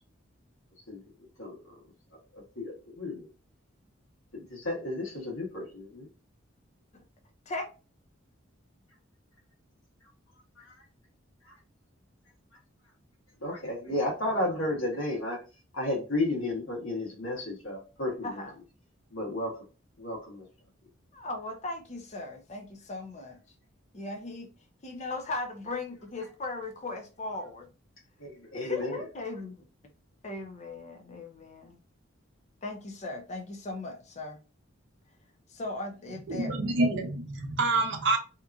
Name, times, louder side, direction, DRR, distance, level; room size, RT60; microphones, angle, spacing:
voice 1, 0.9-1.8 2.3-3.3 4.3-6.1 10.0-10.1 10.5-10.8 11.4-11.6 13.4-15.4 15.7-18.4 19.1-19.7 20.0-20.4 28.2-29.1, left 1 dB, 85° left, 1.3 m, -33 dB
voice 2, 21.1-23.4 23.9-24.5 24.8-27.7 28.5-29.7 30.2-31.8 32.6-34.4 35.5-36.5, left 2 dB, 35° left, 0.5 m, -38 dB
voice 3, 36.3-38.2, right 2 dB, 60° right, 0.6 m, -27 dB
2.8 x 2.5 x 2.2 m
head